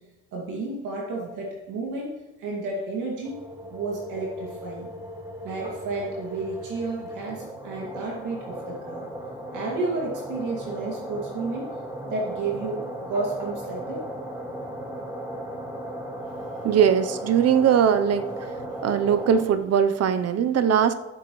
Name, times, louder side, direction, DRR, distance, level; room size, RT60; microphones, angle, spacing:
voice 1, 0.3-2.1 2.4-3.4 3.7-4.9 5.4-9.1 9.5-11.7 12.0-14.0, right 3 dB, 85° right, -3 dB, 2.3 m, -31 dB
sound 1, 3.2-19.4, equal, 10° right, 1.9 m, -37 dB
voice 2, 16.6-18.5 18.8-20.9, right 8 dB, 55° right, 10 dB, 0.8 m, -20 dB
14.0 x 7.7 x 3.1 m, 1.0 s
cardioid pair, 90°, 30 cm